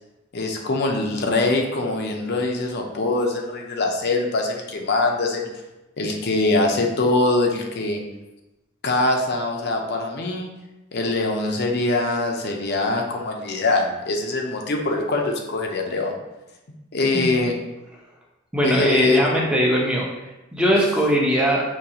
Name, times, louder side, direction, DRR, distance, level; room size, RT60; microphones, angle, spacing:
voice 1, 0.3-5.5 6.0-8.0 8.8-10.5 10.9-16.2 16.9-17.5 18.6-19.4, left 2 dB, 55° left, 2 dB, 0.6 m, -23 dB
voice 2, 18.5-20.1 20.5-21.6, equal, 5° right, -3 dB, 0.7 m, -20 dB
5.5 x 2.9 x 2.8 m, 0.99 s
head